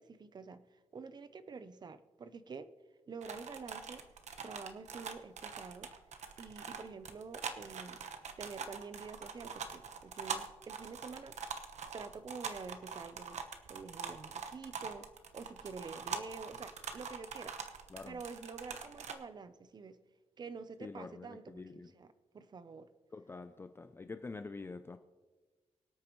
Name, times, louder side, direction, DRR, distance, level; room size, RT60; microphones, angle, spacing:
voice 1, 0.0-2.7 3.1-4.0 4.4-5.9 6.4-8.0 8.4-11.4 11.9-13.4 13.7-15.1 15.3-17.6 18.1-20.0 20.4-22.1 22.3-22.9, right 4 dB, 40° right, 0.6 m, -48 dB
sound 1, 3.2-19.1, right 6 dB, 80° right, 1.0 m, -44 dB
voice 2, 17.9-18.2 20.8-21.9 23.1-25.0, left 3 dB, 20° left, 0.4 m, -46 dB
24.0 x 8.6 x 3.1 m
wide cardioid pair, 175°, 12 cm